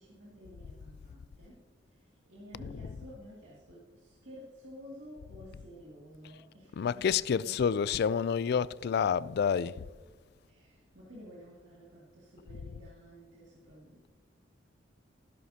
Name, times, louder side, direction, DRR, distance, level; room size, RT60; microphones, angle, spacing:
voice 1, 0.0-1.6 1.9-7.5 10.4-14.1, equal, 75° right, 2.4 m, -52 dB
voice 2, 2.7-3.1 6.7-9.8, left 7 dB, 60° left, 0.3 m, -29 dB
14.5 x 12.5 x 2.8 m
head